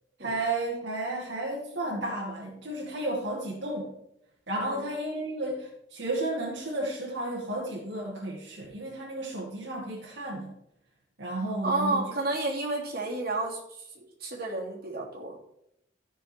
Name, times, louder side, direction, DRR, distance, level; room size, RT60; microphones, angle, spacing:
voice 1, 0.2-3.9 4.5-10.5 11.2-12.0, right 2 dB, 70° right, -4 dB, 2.2 m, -33 dB
voice 2, 11.4-13.9 14.2-15.4, right 2 dB, 55° right, -3 dB, 3.0 m, -31 dB
14.0 x 6.5 x 4.5 m, 0.78 s
head